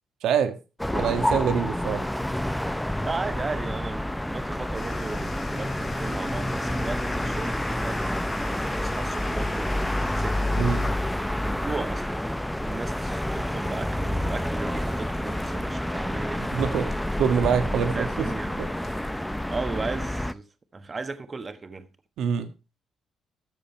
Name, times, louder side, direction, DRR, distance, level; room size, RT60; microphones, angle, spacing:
voice 1, 0.2-0.6 0.9-2.0 10.6-10.9 16.5-18.1 18.6-18.7 22.2-22.5, right 7 dB, 80° right, 1.6 m, -25 dB
sound 1, 0.8-20.3, left 1 dB, 5° left, 0.7 m, -28 dB
voice 2, 3.0-8.1 8.6-10.8 11.4-12.2 12.6-17.0 17.9-18.7 19.5-20.4 20.7-21.9, right 3 dB, 30° right, 1.3 m, -36 dB
sound 2, 4.7-19.6, left 4 dB, 35° left, 2.9 m, -43 dB
13.5 x 6.8 x 4.5 m
cardioid pair, 90°, 0 cm